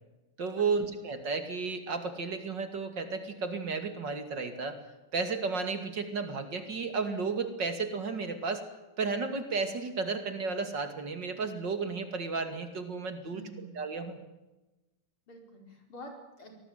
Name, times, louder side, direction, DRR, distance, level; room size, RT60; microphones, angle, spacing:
voice 1, 0.4-4.8 5.1-8.6 9.0-14.2, right 4 dB, 55° right, 8 dB, 3.0 m, -33 dB
voice 2, 13.3-13.7 15.3-16.6, equal, 70° left, 3 dB, 5.8 m, -47 dB
24.0 x 19.0 x 9.3 m, 1.0 s
omnidirectional pair, 2.4 m